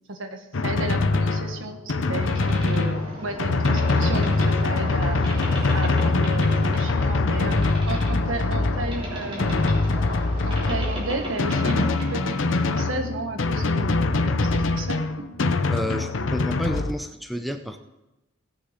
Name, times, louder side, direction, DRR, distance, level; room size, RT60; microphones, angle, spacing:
voice 1, 0.1-5.2 5.7-9.7 10.4-15.3 15.8-16.1, right 2 dB, 80° right, 6 dB, 1.4 m, -33 dB
Drum, 0.5-16.9, left 3 dB, 70° left, 0.7 m, -23 dB
Boat Water vehicle, 2.0-12.5, right 1 dB, 25° right, 3.5 m, -36 dB
voice 2, 15.7-17.8, equal, ahead, 6 dB, 0.6 m, -30 dB
17.5 x 6.9 x 5.1 m, 0.98 s
head